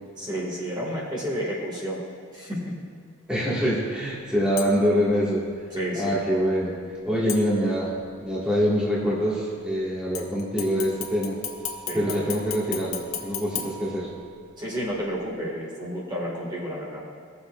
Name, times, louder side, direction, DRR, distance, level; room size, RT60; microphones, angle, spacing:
voice 1, 0.2-2.0 2.3-2.6 5.7-6.2 11.9-12.2 14.6-17.0, equal, 20° right, -5 dB, 1.9 m, -31 dB
voice 2, 3.3-5.4 5.9-6.8 7.0-11.4 11.9-14.1, equal, 5° right, -8 dB, 1.7 m, -25 dB
sound 1, 4.6-5.0 7.3-8.0 10.1-14.5 15.0-15.1, left 7 dB, 75° left, 1.1 m, -36 dB
18.5 x 7.0 x 2.4 m, 2.2 s
head